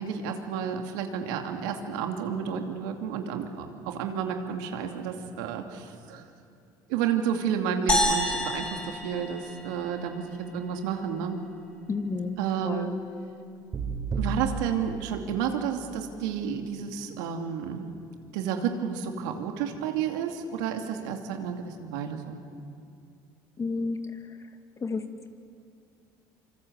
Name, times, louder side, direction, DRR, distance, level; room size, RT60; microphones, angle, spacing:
voice 1, 0.0-6.2 6.9-10.2 10.5-11.4 12.4-12.9 14.1-17.8 18.3-22.4, right 7 dB, 85° right, 4 dB, 2.6 m, -31 dB
sound 1, 7.9-10.3, left 1 dB, 10° left, 6.5 m, -28 dB
voice 2, 11.9-12.4 12.6-12.9 23.6-24.0 24.8-25.0, left 4 dB, 30° left, 6 dB, 2.3 m, -30 dB
sound 2, 13.7-15.8, right 4 dB, 40° right, 4.7 m, -33 dB
26.0 x 25.0 x 8.2 m, 2.4 s
supercardioid pair, 85°, 10 cm